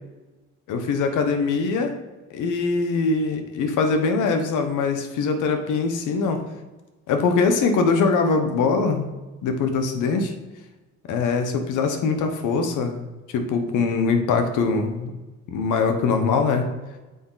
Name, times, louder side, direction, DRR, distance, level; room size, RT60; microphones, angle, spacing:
voice 1, 0.7-1.9 2.3-6.4 7.1-9.1 9.4-10.3 11.1-13.0 13.3-15.1 15.5-16.7, left 4 dB, 90° left, 6 dB, 1.0 m, -22 dB
6.8 x 4.9 x 3.9 m, 1.2 s
cardioid pair, 90°, 30 cm